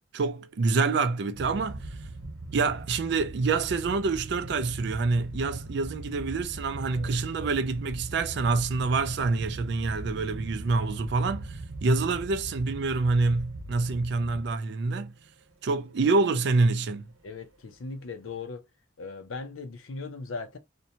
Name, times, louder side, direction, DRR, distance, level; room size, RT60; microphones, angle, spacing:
voice 1, 0.1-1.9 2.5-15.1 15.6-17.1, right 3 dB, 55° right, 0.4 m, -26 dB
sound 1, 1.3-14.8 15.1-15.3 16.0-16.2 16.8-17.0 18.1-18.3, right 2 dB, 80° right, 1.0 m, -40 dB
voice 2, 17.2-18.7 19.0-20.6, left 4 dB, 85° left, 0.6 m, -38 dB
2.7 x 2.1 x 2.7 m
head